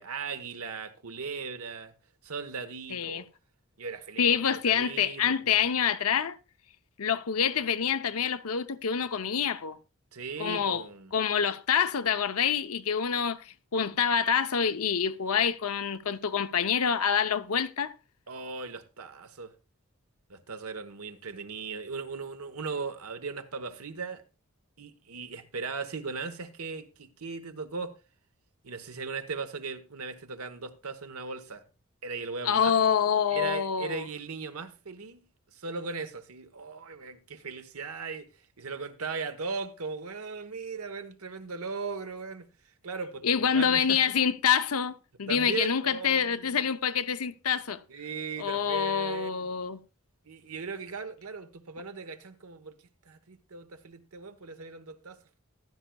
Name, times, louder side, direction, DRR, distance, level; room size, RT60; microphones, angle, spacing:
voice 1, 0.0-1.9 2.2-3.3 3.8-4.4 4.7-5.6 10.1-11.1 18.3-19.5 20.3-24.2 24.8-27.9 28.6-31.6 32.0-32.8 33.3-35.2 35.5-38.3 38.6-42.5 42.8-43.3 43.5-44.0 45.3-46.7 47.9-49.5 50.3-52.8 53.0-55.4, right 4 dB, 85° right, 1.1 m, -38 dB
voice 2, 2.9-3.2 4.2-6.4 7.0-9.8 10.4-10.8 11.1-17.9 32.4-34.1 43.2-47.8 48.4-49.8, left 7 dB, 85° left, 0.7 m, -27 dB
15.0 x 11.5 x 2.3 m
head